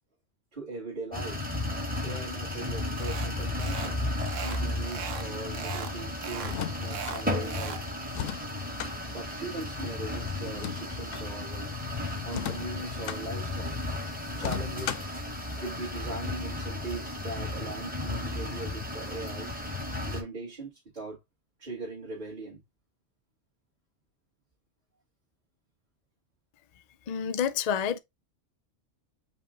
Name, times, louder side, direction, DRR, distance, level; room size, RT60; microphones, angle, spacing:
voice 1, 0.5-1.4 2.0-4.0 4.4-7.8 8.3-11.7 12.2-13.8 14.4-15.0 15.6-19.5 20.1-21.2 21.6-22.6, right 2 dB, 35° right, 2.3 m, -40 dB
sound 1, 1.1-20.2, left 2 dB, 5° right, 1.2 m, -34 dB
sound 2, 3.0-3.3 3.6-3.9 4.2-5.3 5.5-5.9 6.2-7.8, right 7 dB, 70° right, 1.0 m, -38 dB
sound 3, 6.4-7.2 8.1-8.9 10.4-11.3 12.3-13.2 14.4-15.2, left 11 dB, 85° left, 1.0 m, -36 dB
voice 2, 27.1-28.0, left 8 dB, 70° left, 0.3 m, -28 dB
5.5 x 2.4 x 3.7 m
omnidirectional pair, 1.3 m